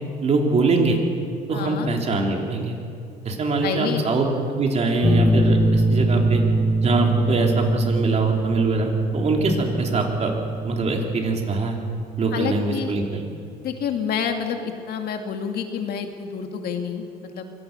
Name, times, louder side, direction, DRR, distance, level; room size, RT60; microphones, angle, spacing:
voice 1, 0.2-1.0 1.5-2.8 3.2-4.3 4.5-6.4 6.8-10.3 10.6-11.8 12.2-13.0, right 3 dB, 40° right, 1 dB, 3.7 m, -23 dB
voice 2, 1.5-1.9 3.6-4.0 12.3-13.0 13.6-17.5, left 7 dB, 65° left, 5 dB, 2.5 m, -28 dB
sound 1, 5.0-12.3, right 1 dB, ahead, 1.4 m, -23 dB
24.0 x 18.5 x 6.8 m, 2.4 s
cardioid pair, 110°, 17 cm